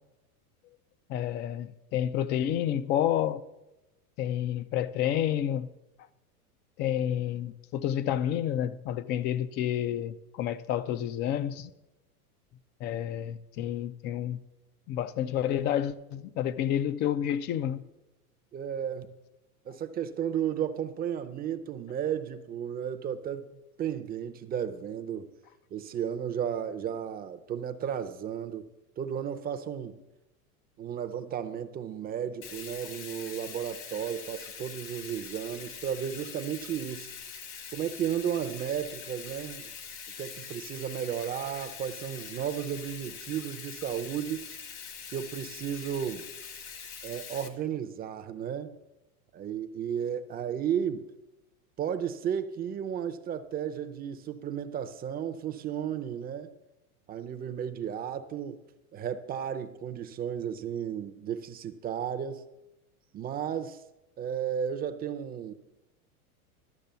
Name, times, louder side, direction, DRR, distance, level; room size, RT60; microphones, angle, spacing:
voice 1, 1.1-3.4 4.2-5.7 6.8-11.7 12.8-14.4 14.9-17.8, left 10 dB, 25° left, 0.4 m, -29 dB
voice 2, 18.5-19.2 19.7-23.5 23.8-25.3 25.7-28.7 29.0-30.0 30.8-37.1 37.7-39.7 40.2-44.4 45.1-46.3 47.0-48.7 49.3-51.1 51.8-56.5 57.1-58.6 58.9-62.4 63.1-63.8 64.2-65.5, right 9 dB, 20° right, 0.6 m, -33 dB
Bathtub (filling or washing), 32.4-47.5, left 6 dB, 65° left, 2.0 m, -43 dB
12.0 x 6.7 x 6.7 m
supercardioid pair, 125°, 44 cm